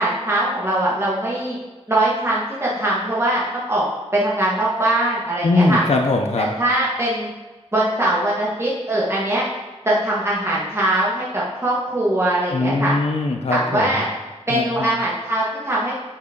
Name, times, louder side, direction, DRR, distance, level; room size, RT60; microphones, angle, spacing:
voice 1, 0.0-1.6 1.9-3.9 4.1-5.8 6.4-7.3 7.7-9.4 9.8-12.9 13.5-14.1 14.5-15.9, right 1 dB, 25° right, -7 dB, 1.6 m, -21 dB
voice 2, 5.4-6.5 12.5-14.0 14.5-14.9, left 2 dB, 70° left, 2 dB, 0.6 m, -20 dB
10.0 x 4.4 x 3.8 m, 1.2 s
wide cardioid pair, 75°, 11 cm